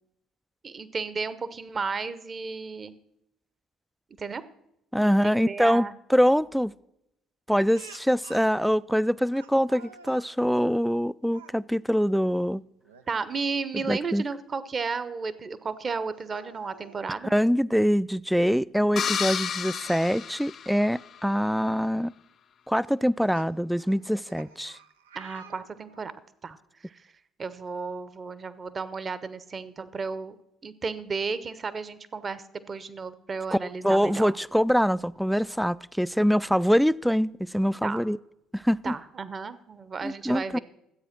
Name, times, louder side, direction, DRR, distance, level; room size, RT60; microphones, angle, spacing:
voice 1, 0.6-3.0 4.2-4.4 5.0-5.9 13.1-17.3 25.1-26.1 26.4-26.6 26.8-27.0 27.4-30.4 30.6-34.3 37.8-38.0 38.8-40.6, right 4 dB, 35° right, 15 dB, 0.9 m, -33 dB
voice 2, 4.9-6.7 7.5-12.6 13.9-14.2 17.3-22.1 22.7-24.8 33.5-33.6 33.8-38.2 38.5-38.9 40.0-40.6, equal, ahead, 19 dB, 0.3 m, -24 dB
Speech, 7.7-8.5 9.3-10.3 11.2-11.6 12.8-13.1 13.5-13.6 15.3-15.4 16.2-17.0 18.4-18.5 18.8-18.9 20.8-20.9 21.5-21.7 22.8-26.2, right 6 dB, 90° right, 0.5 m, -50 dB
sound 1, 19.0-21.2, left 8 dB, 50° left, 0.5 m, -31 dB
12.5 x 8.2 x 5.9 m, 0.81 s
hypercardioid pair, 60°, 0 cm